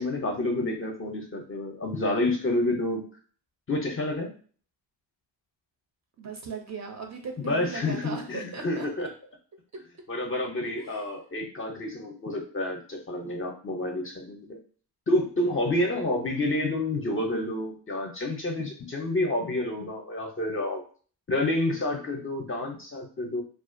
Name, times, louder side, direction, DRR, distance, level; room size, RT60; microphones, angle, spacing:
voice 1, 0.0-3.0 3.7-4.3 7.4-9.1 10.1-14.6 15.1-20.8 21.3-23.4, left 1 dB, 30° left, 2 dB, 0.4 m, -29 dB
voice 2, 6.2-8.9 10.6-11.1 15.8-15.9, right 5 dB, 40° right, 3 dB, 0.4 m, -38 dB
2.3 x 2.2 x 2.5 m, 0.42 s
cardioid pair, 110°, 45 cm